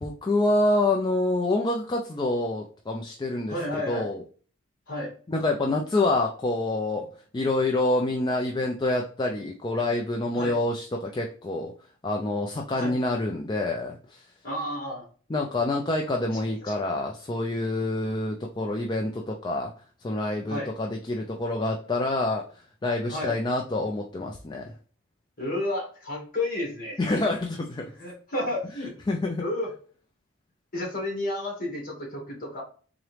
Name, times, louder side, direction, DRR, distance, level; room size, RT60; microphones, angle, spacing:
voice 1, 0.0-4.2 5.3-7.1 7.3-11.7 12.0-14.3 15.3-19.7 20.0-22.5 22.8-24.7 27.0-27.9 29.1-29.4, left 2 dB, 20° left, 1 dB, 0.4 m, -27 dB
voice 2, 3.5-4.1 4.9-5.1 10.3-10.6 12.8-13.0 14.4-15.1 16.3-16.7 20.5-20.7 23.1-23.3 25.4-27.1 28.0-28.9 29.4-29.7 30.7-32.6, left 1 dB, 40° left, 0 dB, 1.7 m, -31 dB
3.7 x 3.0 x 3.2 m, 0.42 s
head